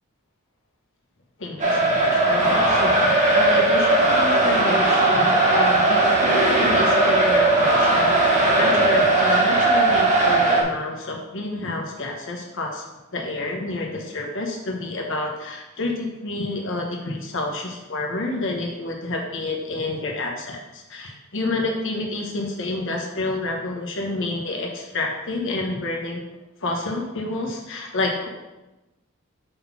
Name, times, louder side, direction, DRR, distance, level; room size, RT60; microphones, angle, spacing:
voice 1, 1.4-12.8 13.1-26.2 26.6-28.3, left 2 dB, 60° left, 1 dB, 1.2 m, -29 dB
sound 1, 1.6-10.6, right 2 dB, 35° right, 1.3 m, -18 dB
5.5 x 3.9 x 5.9 m, 1.1 s
head